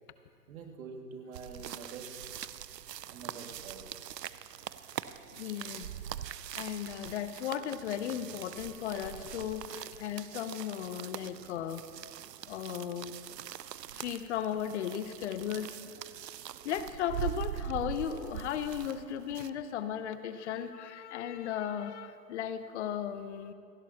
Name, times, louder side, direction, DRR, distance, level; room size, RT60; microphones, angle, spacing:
voice 1, 0.5-2.2 3.1-3.8, right 5 dB, 60° right, 2 dB, 2.3 m, -46 dB
sound 1, 1.3-19.5, right 10 dB, 85° right, 0.6 m, -43 dB
voice 2, 5.4-5.9 6.6-11.8 12.5-13.2 14.0-15.7 16.6-23.5, left 9 dB, 45° left, 11 dB, 0.9 m, -36 dB
28.0 x 11.0 x 2.9 m, 2.3 s
hypercardioid pair, 135°, 48 cm